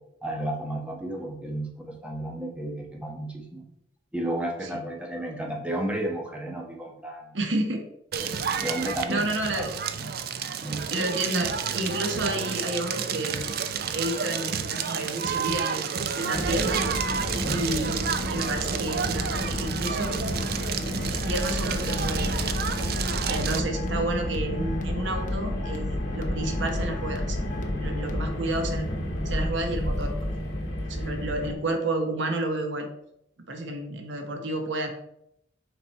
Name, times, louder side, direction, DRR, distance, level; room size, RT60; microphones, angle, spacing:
voice 1, 0.2-3.6 4.1-7.4 8.2-8.3 8.6-9.6 10.0-10.1 10.5-11.0 17.3-17.6, right 1 dB, 5° right, 0 dB, 1.1 m, -33 dB
voice 2, 7.3-7.9 8.6-8.8 9.1-9.7 10.9-13.4 13.9-16.8 17.4-18.0 18.3-20.1 20.8-22.8 23.3-27.4 27.8-28.9 29.2-30.5 30.9-32.9 33.5-34.9, right 2 dB, 70° right, 5 dB, 0.9 m, -31 dB
Crackle, 8.1-23.6, right 7 dB, 55° right, 0.5 m, -30 dB
Car, 16.3-31.5, left 1 dB, 60° left, 2.1 m, -31 dB
sound 1, 21.2-28.1, left 1 dB, 40° left, 0.8 m, -33 dB
6.0 x 4.9 x 4.2 m, 0.78 s
head